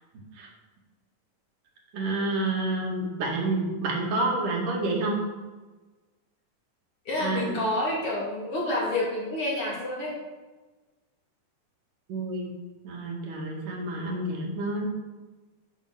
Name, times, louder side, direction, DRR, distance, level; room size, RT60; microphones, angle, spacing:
voice 1, 1.9-5.2 7.2-7.7 12.1-12.5 12.8-14.9, right 2 dB, 75° right, -1 dB, 3.5 m, -29 dB
voice 2, 7.1-10.1, left 1 dB, 45° left, -5 dB, 3.9 m, -28 dB
10.0 x 6.5 x 6.9 m, 1.2 s
omnidirectional pair, 3.7 m